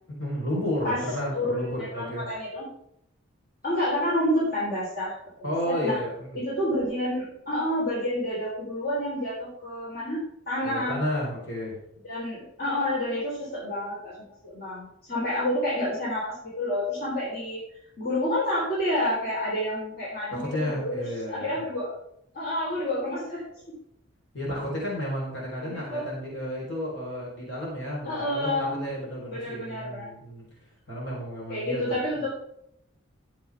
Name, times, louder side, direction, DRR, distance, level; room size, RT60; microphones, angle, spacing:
voice 1, 0.2-2.3 5.4-6.4 10.6-11.8 20.3-21.7 24.3-30.5 30.9-32.2, equal, 70° left, -4 dB, 4.3 m, -32 dB
voice 2, 1.3-1.7 1.9-2.6 3.6-5.1 5.7-6.0 6.3-11.0 12.1-14.1 14.4-17.6 18.0-20.9 21.3-22.0 22.3-23.4 25.6-26.0 28.0-28.8 29.3-30.1 31.5-32.3, left 1 dB, 50° left, -6 dB, 4.1 m, -29 dB
13.5 x 8.3 x 3.6 m, 0.76 s
head